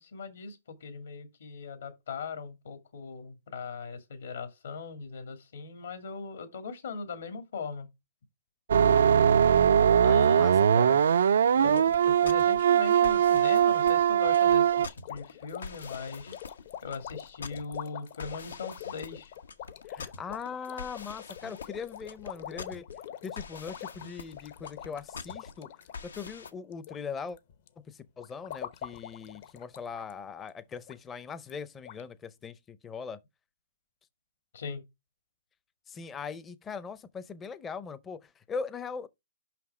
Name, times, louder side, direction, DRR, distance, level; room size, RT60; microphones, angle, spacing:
voice 1, 0.0-7.9 10.0-10.5 11.6-16.3 16.8-19.3 34.5-34.8, left 4 dB, 70° left, 2.4 m, -40 dB
sound 1, 8.7-14.9, right 8 dB, 70° right, 0.4 m, -21 dB
voice 2, 10.0-11.0 11.6-11.7 19.9-22.8 23.2-25.7 26.0-27.4 27.9-33.2 35.9-39.1, left 5 dB, 15° left, 0.6 m, -40 dB
sound 2, 11.7-26.5, left 4 dB, 90° left, 1.1 m, -45 dB
sound 3, 14.2-27.0 27.2-27.7 28.2-30.1 30.4-30.5 30.9-31.0 31.5-31.6 31.8-32.0, left 10 dB, 45° left, 0.8 m, -44 dB
5.8 x 5.7 x 4.9 m
hypercardioid pair, 150°, 0 cm